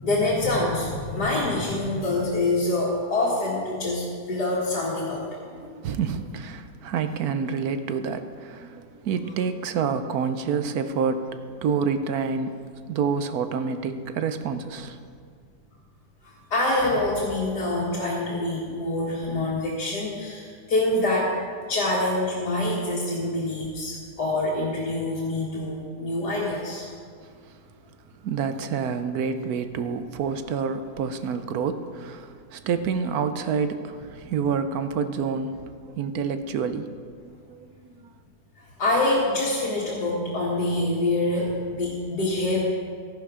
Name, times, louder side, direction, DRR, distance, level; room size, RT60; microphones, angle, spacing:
voice 1, 0.0-5.3 16.2-21.3 21.7-26.9 38.6-42.6, left 2 dB, 80° left, 2.2 m, -25 dB
voice 2, 5.6-15.0 27.5-27.6 28.2-36.9 37.2-38.1, right 6 dB, 70° right, 1.2 m, -28 dB
13.0 x 11.0 x 4.9 m
omnidirectional pair, 1.7 m